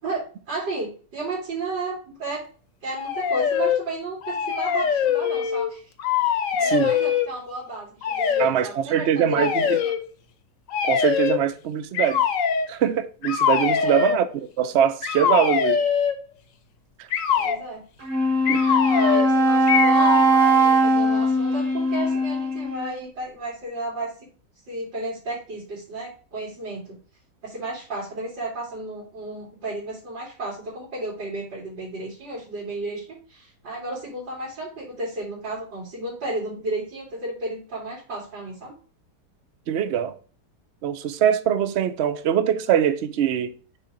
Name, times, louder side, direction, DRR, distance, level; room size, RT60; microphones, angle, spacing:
voice 1, 0.0-2.4 2.8-5.8 6.3-9.9 13.7-14.0 17.3-17.8 18.8-24.1 24.7-26.9 27.4-38.7, right 2 dB, 90° right, 3.6 m, -33 dB
sound 1, 2.9-3.8 4.2-5.7 6.0-7.3 8.0-8.5 9.3-10.0 10.7-11.4 11.9-12.7 13.2-14.2 15.0-16.2 17.1-17.6 18.4-19.3 19.7-20.3, left 8 dB, 55° left, 1.0 m, -23 dB
voice 2, 6.6-6.9 8.4-9.8 10.8-12.2 12.7-15.8 17.0-17.1 18.5-18.8 39.7-40.2 40.8-43.6, right 9 dB, 70° right, 0.6 m, -23 dB
Wind instrument woodwind instrument, 18.0-22.9, right 1 dB, 45° right, 2.1 m, -20 dB
6.6 x 4.3 x 5.0 m
omnidirectional pair, 1.9 m